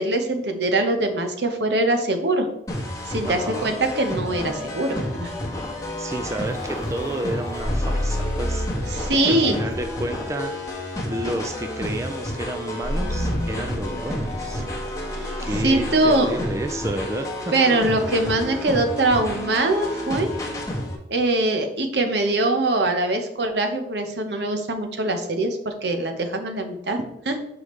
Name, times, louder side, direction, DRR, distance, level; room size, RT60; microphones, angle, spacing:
voice 1, 0.0-2.5 3.1-5.3 8.9-9.5 15.2-16.3 17.5-20.3 21.1-27.4, right 2 dB, 70° right, 5 dB, 0.9 m, -23 dB
sound 1, 2.7-21.0, left 1 dB, 20° left, 1.1 m, -31 dB
voice 2, 3.3-3.7 6.0-10.5 11.1-14.6 15.4-17.5, right 1 dB, 15° right, 5 dB, 0.4 m, -31 dB
sound 2, 5.9-9.3 9.7-10.3 12.8-16.9, equal, 35° left, 1.3 m, -30 dB
6.8 x 4.9 x 3.2 m, 0.81 s
head